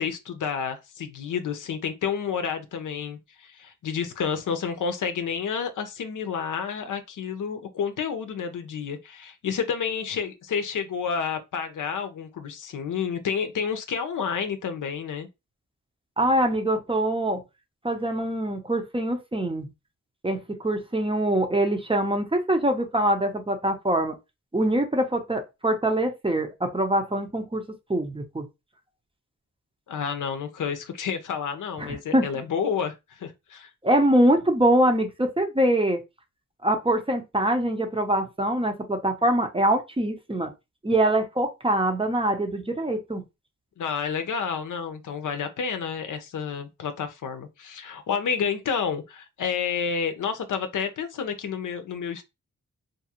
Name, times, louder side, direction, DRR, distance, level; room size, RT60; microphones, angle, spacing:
voice 1, 0.0-15.3 29.9-33.7 43.8-52.2, left 6 dB, 70° left, 0.6 m, -30 dB
voice 2, 16.2-17.4 17.8-19.7 20.2-24.2 24.5-27.6 27.9-28.4 31.8-32.3 33.8-36.0 36.6-40.5 40.8-43.2, right 1 dB, 15° right, 0.6 m, -24 dB
2.6 x 2.4 x 2.8 m
cardioid pair, 55°, 32 cm